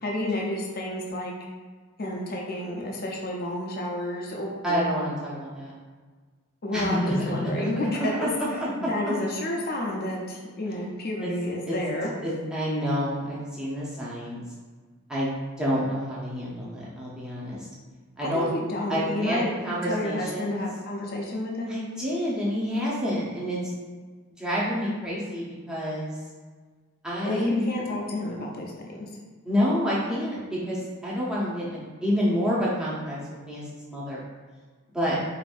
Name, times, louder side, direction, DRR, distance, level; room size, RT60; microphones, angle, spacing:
voice 1, 0.0-1.3 2.0-4.9 6.6-8.3 8.8-12.1 18.3-19.5 19.8-21.8 27.2-29.1, left 1 dB, 45° left, -1 dB, 0.5 m, -30 dB
voice 2, 4.6-5.7 6.7-7.2 7.9-8.3 9.1-9.2 11.2-11.3 11.7-11.8 12.2-14.4 15.1-17.7 18.2-18.5 18.9-20.6 21.7-23.6 24.4-26.2 27.0-27.6 29.4-33.2 33.5-33.6 33.9-34.2 34.9-35.2, equal, 5° right, -8 dB, 0.8 m, -28 dB
5.1 x 2.6 x 2.6 m, 1.5 s
head